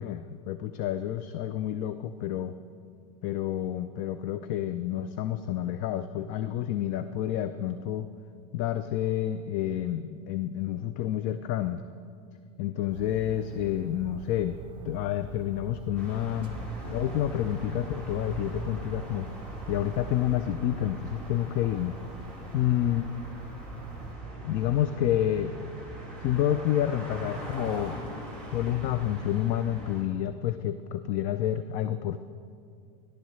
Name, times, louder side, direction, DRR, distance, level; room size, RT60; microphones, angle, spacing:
voice 1, 0.0-2.5 3.2-8.1 8.5-11.8 12.6-14.6 14.8-16.6 16.8-19.3 19.7-22.0 22.5-23.1 24.4-25.5 26.2-28.0 28.5-32.2, left 11 dB, 40° left, 11 dB, 0.4 m, -29 dB
sound 1, 12.9-24.1, right 5 dB, 25° right, 1.0 m, -46 dB
sound 2, 15.9-30.0, right 1 dB, 5° left, 3.6 m, -41 dB
17.0 x 11.0 x 3.2 m, 2.3 s
supercardioid pair, 135°, 19 cm